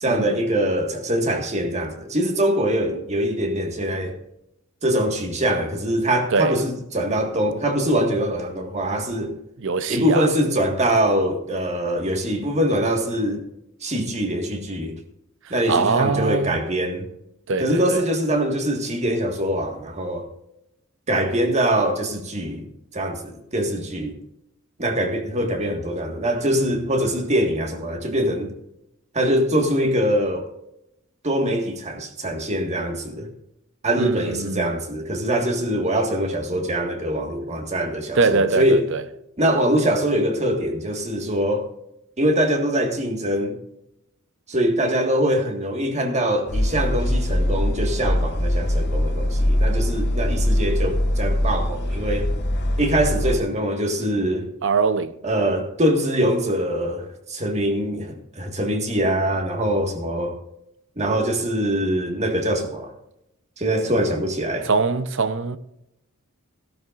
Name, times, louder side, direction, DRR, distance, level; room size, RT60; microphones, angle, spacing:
voice 1, 0.0-4.1 4.8-9.4 9.9-13.4 13.8-15.0 15.5-17.1 17.6-20.3 21.1-22.6 22.9-24.2 24.8-28.5 29.1-30.5 31.2-33.3 33.8-38.8 39.4-41.7 42.2-43.6 44.5-52.3 52.8-54.5 55.2-60.4 61.0-62.9 63.6-64.7, right 1 dB, 35° right, 1.7 m, -23 dB
voice 2, 9.6-10.3 15.7-16.6 17.5-18.0 34.0-34.7 38.1-39.0 54.6-55.1 64.6-65.6, right 4 dB, 60° right, 0.7 m, -22 dB
sound 1, 46.5-53.4, left 1 dB, 55° left, 1.5 m, -22 dB
15.5 x 12.5 x 2.5 m
head